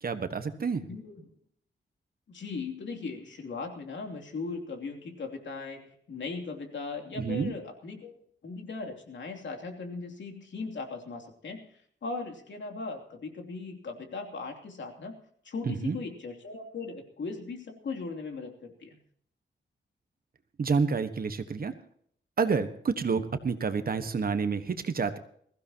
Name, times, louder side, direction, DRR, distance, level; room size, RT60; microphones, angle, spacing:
voice 1, 0.0-0.8 7.2-7.5 15.7-16.0 20.6-21.7 22.4-25.2, right 5 dB, 50° right, 9 dB, 1.4 m, -29 dB
voice 2, 0.9-1.3 2.3-8.2 8.4-15.2 15.4-19.0, left 4 dB, 70° left, 3 dB, 3.0 m, -38 dB
21.5 x 15.5 x 2.9 m, 0.62 s
wide cardioid pair, 140°, 19 cm